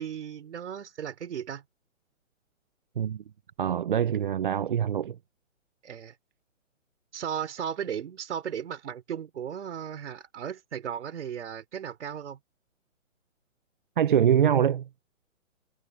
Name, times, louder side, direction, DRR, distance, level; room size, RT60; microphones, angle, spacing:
voice 1, 0.0-1.6 5.8-6.1 7.1-12.4, right 8 dB, 55° right, 4.0 m, -36 dB
voice 2, 3.6-5.2 14.0-14.9, right 9 dB, 40° right, 0.6 m, -24 dB
hypercardioid pair, 155°, 40 cm